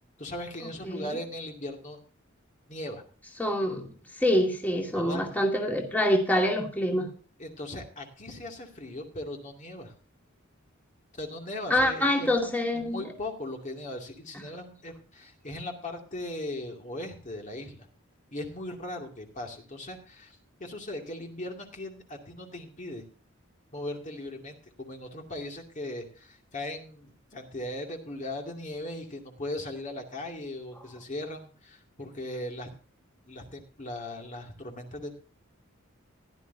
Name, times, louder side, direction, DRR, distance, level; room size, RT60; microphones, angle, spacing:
voice 1, 0.2-2.0 2.7-3.0 4.9-5.4 7.4-9.9 11.1-12.5 12.9-17.9 18.3-23.0 23.7-32.7 33.3-35.1, left 1 dB, 40° left, 2 dB, 2.5 m, -38 dB
voice 2, 3.4-7.1 11.7-13.0, left 1 dB, 10° left, 1 dB, 2.3 m, -26 dB
16.5 x 11.5 x 2.7 m, 0.40 s
head